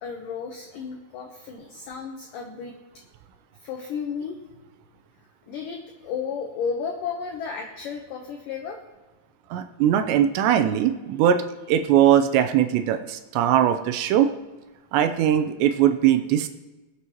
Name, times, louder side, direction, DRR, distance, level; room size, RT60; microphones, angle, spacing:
voice 1, 0.0-2.7 3.6-4.4 5.5-8.8, left 6 dB, 70° left, 2 dB, 2.1 m, -33 dB
voice 2, 9.5-11.4 11.7-14.3 14.9-16.5, right 10 dB, 85° right, 7 dB, 2.8 m, -20 dB
22.0 x 8.4 x 3.0 m, 1.2 s
omnidirectional pair, 5.0 m